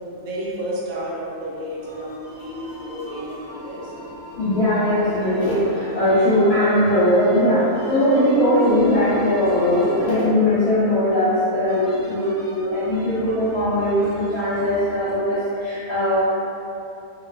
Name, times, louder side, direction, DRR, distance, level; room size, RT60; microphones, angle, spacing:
voice 1, 0.1-3.9, equal, 75° right, -6 dB, 1.0 m, -31 dB
sound 1, 1.8-15.1, equal, 30° right, 0.6 m, -39 dB
voice 2, 4.4-16.2, left 1 dB, 90° left, -11 dB, 1.1 m, -19 dB
2.5 x 2.3 x 2.3 m, 2.7 s
omnidirectional pair, 1.5 m